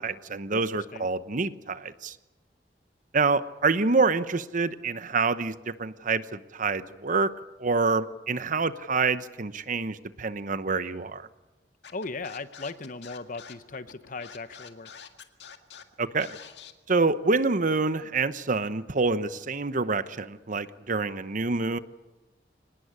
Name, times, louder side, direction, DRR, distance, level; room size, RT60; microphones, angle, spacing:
voice 1, 0.0-2.2 3.1-7.3 7.6-11.3 16.0-16.4 16.9-21.8, right 4 dB, 50° right, 13 dB, 0.9 m, -27 dB
Scratching (performance technique), 11.8-16.7, left 7 dB, 85° left, 1.9 m, -46 dB
voice 2, 11.9-14.9, left 3 dB, 50° left, 13 dB, 1.0 m, -37 dB
24.5 x 19.0 x 9.8 m, 1.1 s
head